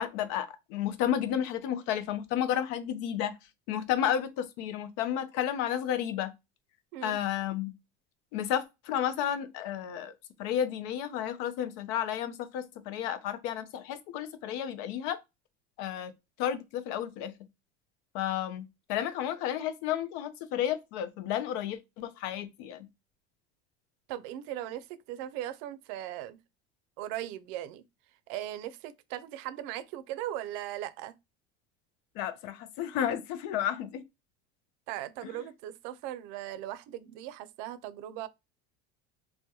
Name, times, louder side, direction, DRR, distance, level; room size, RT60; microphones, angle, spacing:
voice 1, 0.0-3.3 3.7-6.3 7.0-7.7 8.3-10.1 10.4-15.2 15.8-16.1 16.4-17.3 18.1-22.9 32.2-34.0 35.2-35.3, left 10 dB, 70° left, 0.6 m, -32 dB
voice 2, 24.1-26.4 27.0-27.8 28.3-31.1 34.9-38.3, right 12 dB, 70° right, 0.5 m, -38 dB
2.2 x 2.1 x 2.7 m
supercardioid pair, 100°, 33 cm